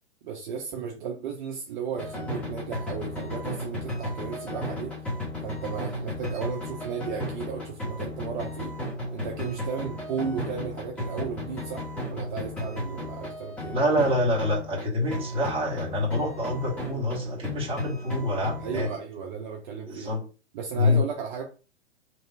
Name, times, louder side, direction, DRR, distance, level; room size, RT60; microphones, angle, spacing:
voice 1, 0.2-4.9 5.4-8.7 9.1-13.8 18.6-20.1 20.5-21.4, right 6 dB, 45° right, 0 dB, 0.8 m, -34 dB
sound 1, 2.0-14.9 15.1-19.0, left 1 dB, 5° left, 1.3 m, -35 dB
voice 2, 13.7-18.9 19.9-20.2 20.7-21.0, left 1 dB, 15° right, -3 dB, 1.4 m, -26 dB
3.3 x 2.8 x 4.5 m, 0.34 s
hypercardioid pair, 120°, 35 cm